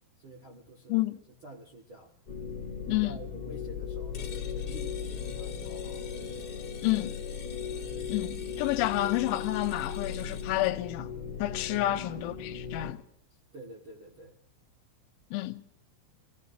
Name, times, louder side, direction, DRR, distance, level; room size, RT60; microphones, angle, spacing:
voice 1, 0.2-1.0 1.4-2.1 2.8-6.1 11.7-12.0 13.3-14.4, right 1 dB, 55° right, 1.4 m, -48 dB
sound 1, 2.3-12.9, left 6 dB, 35° left, 1.9 m, -37 dB
voice 2, 2.9-3.2 6.8-7.1 8.1-11.1 11.4-13.0 15.3-15.6, left 16 dB, 85° left, 3.2 m, -29 dB
sound 2, 4.1-10.7, left 7 dB, 50° left, 1.5 m, -48 dB
26.5 x 17.5 x 2.8 m
omnidirectional pair, 5.4 m